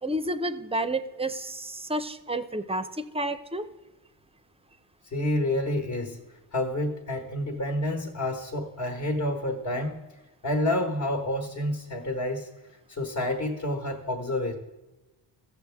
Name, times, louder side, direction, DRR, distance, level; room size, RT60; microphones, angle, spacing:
voice 1, 0.0-3.6, right 1 dB, 15° right, 11 dB, 0.5 m, -30 dB
voice 2, 5.1-6.2 6.5-10.0 10.4-12.5 12.9-14.5, left 1 dB, 45° left, 3 dB, 1.2 m, -29 dB
15.5 x 7.0 x 3.5 m, 1.1 s
cardioid pair, 115°, 42 cm